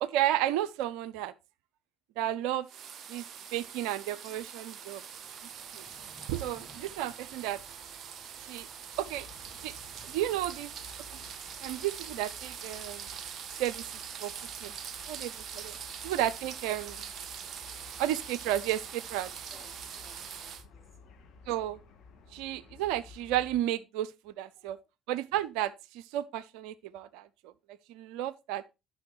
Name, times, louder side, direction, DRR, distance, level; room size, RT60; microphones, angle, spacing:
voice 1, 0.0-1.3 2.2-2.7 3.1-3.2 3.5-5.0 5.7-5.8 6.3-7.6 8.4-8.7 9.0-9.3 9.6-9.7 10.1-10.7 11.6-13.0 13.6-13.8 14.2-14.3 14.6-14.7 15.1-15.8 16.0-17.0 18.0-19.3 21.5-21.8 22.3-24.8 25.1-27.5 27.9-28.6, right 13 dB, 65° right, 0.4 m, -32 dB
sound 1, 2.7-20.6, right 7 dB, 45° right, 0.8 m, -43 dB
Train, 3.0-16.3 16.7-16.8, right 2 dB, 25° right, 4.1 m, -60 dB
sound 2, 8.9-23.6, left 4 dB, 55° left, 2.7 m, -55 dB
voice 2, 15.7-16.0 17.7-18.0 19.4-21.2 24.5-24.8, equal, 15° left, 3.5 m, -61 dB
12.5 x 5.9 x 3.0 m
figure-of-eight pair, 55°, 0 cm